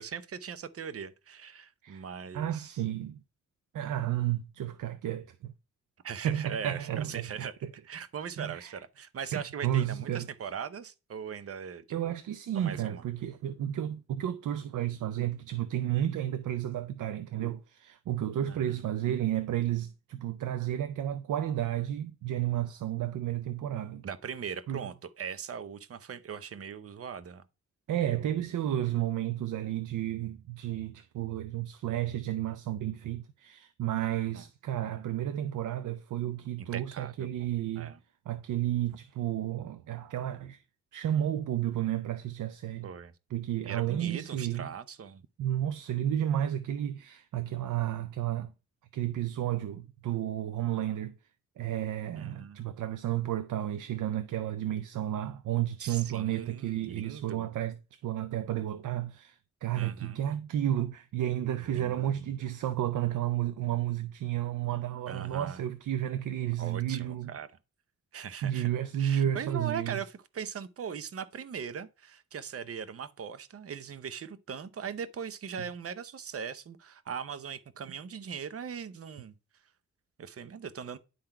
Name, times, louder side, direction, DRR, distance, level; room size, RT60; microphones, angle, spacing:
voice 1, 0.0-2.7 6.0-7.5 7.9-12.2 12.5-13.0 18.5-18.7 24.0-27.4 28.0-28.3 34.3-34.4 36.7-37.3 37.8-38.0 42.8-43.1 43.6-45.2 52.2-52.6 55.8-57.5 59.8-60.2 61.6-62.3 65.1-65.6 66.6-67.5 68.1-68.7 69.0-79.3 80.2-81.0, right 7 dB, 50° right, 0.7 m, -40 dB
voice 2, 2.3-3.2 3.7-5.5 6.2-7.3 7.6-7.7 8.4-8.8 9.3-10.3 11.9-24.1 24.7-24.9 27.9-37.9 38.3-40.6 40.9-42.9 43.3-44.7 45.4-48.5 48.9-51.1 51.6-67.3 68.4-70.0, right 11 dB, 85° right, 0.5 m, -32 dB
10.5 x 3.8 x 4.4 m
cardioid pair, 85°, 30 cm